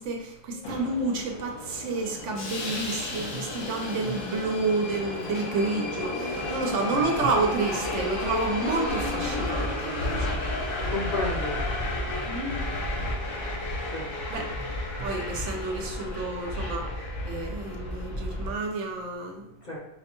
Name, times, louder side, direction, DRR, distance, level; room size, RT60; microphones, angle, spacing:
voice 1, 0.0-10.4 12.3-12.6 14.3-14.5 15.0-16.9 17.2-19.5, right 3 dB, 80° right, 2 dB, 1.0 m, -30 dB
Subway metro underground, 0.6-18.5, left 1 dB, 85° left, 1.1 m, -32 dB
voice 2, 10.9-11.7 13.9-14.5 19.6-19.8, left 2 dB, 45° left, -3 dB, 0.7 m, -33 dB
4.3 x 2.2 x 2.9 m, 0.80 s
omnidirectional pair, 1.2 m